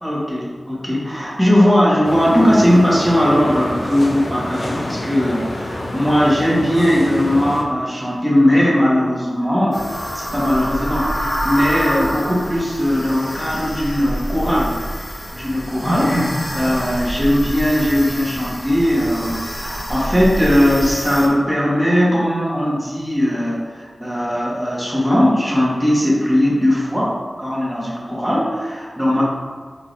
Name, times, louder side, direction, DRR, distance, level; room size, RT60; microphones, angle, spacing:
voice 1, 0.0-14.8 15.3-29.2, equal, 5° right, -6 dB, 1.3 m, -18 dB
sound 1, 2.0-7.6, left 1 dB, 65° left, 0.5 m, -28 dB
sound 2, 9.7-21.3, equal, 30° left, 0.7 m, -27 dB
4.1 x 3.8 x 3.2 m, 1.5 s
wide cardioid pair, 75°, 0 cm